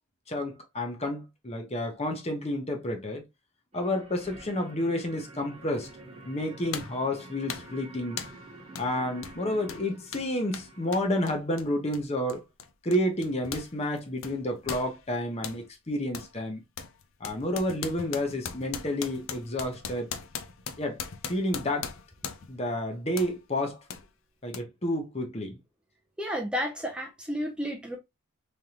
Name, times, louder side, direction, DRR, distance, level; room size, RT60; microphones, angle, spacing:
voice 1, 0.3-3.2 3.7-5.9 6.2-8.2 8.8-12.4 12.8-16.6 17.2-20.1 20.8-21.0 21.3-21.9 22.5-23.8 24.4-25.6, left 1 dB, 30° left, 0.9 m, -30 dB
sound 1, 3.7-11.0, right 2 dB, 30° right, 1.1 m, -48 dB
sound 2, 5.9-6.0 6.7-7.0 7.5-7.8 8.2-8.4 8.7-8.9 9.2-13.7 14.0-15.6 16.1-16.3 16.8-22.6 23.2-23.4 23.9-24.0 24.5-24.6, left 7 dB, 70° left, 0.5 m, -39 dB
voice 2, 26.2-28.0, equal, 5° right, 0.6 m, -32 dB
3.7 x 3.3 x 2.9 m
head